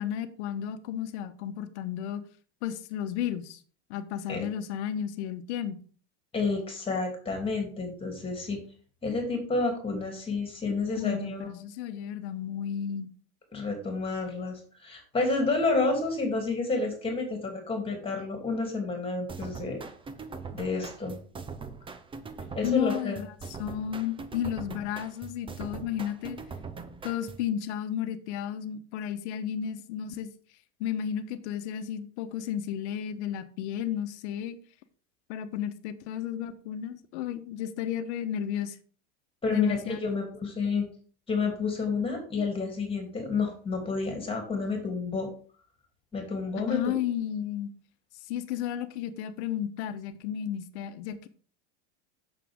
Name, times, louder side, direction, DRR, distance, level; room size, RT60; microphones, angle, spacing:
voice 1, 0.0-2.2 2.6-3.6 3.9-5.8 10.9-13.1 22.6-26.4 27.0-30.3 30.8-34.6 35.3-38.8 39.5-40.0 46.7-47.7 48.3-51.3, left 9 dB, 70° left, 9 dB, 1.2 m, -33 dB
voice 2, 6.3-8.6 9.0-11.5 13.5-19.8 20.5-21.1 22.5-23.2 39.4-40.9 41.3-45.3 46.1-46.8, left 3 dB, 15° left, 3 dB, 2.9 m, -30 dB
sound 1, 19.3-27.5, right 4 dB, 15° right, 0.8 m, -42 dB
8.6 x 6.8 x 3.6 m, 0.42 s
supercardioid pair, 125°, 36 cm